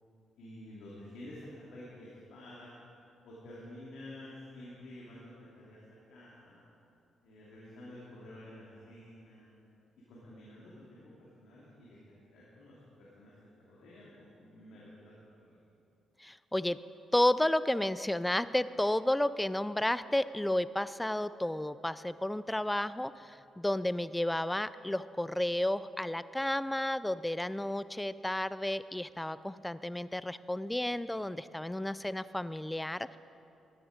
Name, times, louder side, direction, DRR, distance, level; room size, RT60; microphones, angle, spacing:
voice 1, 0.4-2.8 3.2-5.8 6.1-6.6 7.2-9.5 10.1-12.8 13.1-13.3 13.7-15.5 23.1-23.2, left 1 dB, 85° left, -7 dB, 2.7 m, -50 dB
voice 2, 16.2-16.8 17.1-33.2, left 1 dB, 10° left, 15 dB, 0.3 m, -32 dB
13.5 x 11.5 x 5.1 m, 2.7 s
cardioid pair, 85°, 0 cm